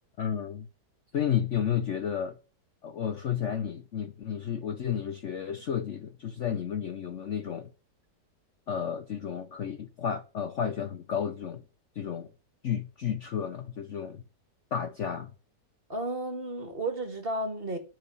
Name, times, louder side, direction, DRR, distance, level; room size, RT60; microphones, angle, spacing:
voice 1, 0.2-0.7 1.1-2.4 2.8-7.7 8.7-11.6 12.0-12.3 12.6-14.2 14.7-15.3, left 8 dB, 55° left, 0.9 m, -32 dB
voice 2, 15.9-17.8, right 2 dB, 30° right, 2.1 m, -33 dB
10.5 x 6.1 x 6.8 m
omnidirectional pair, 1.9 m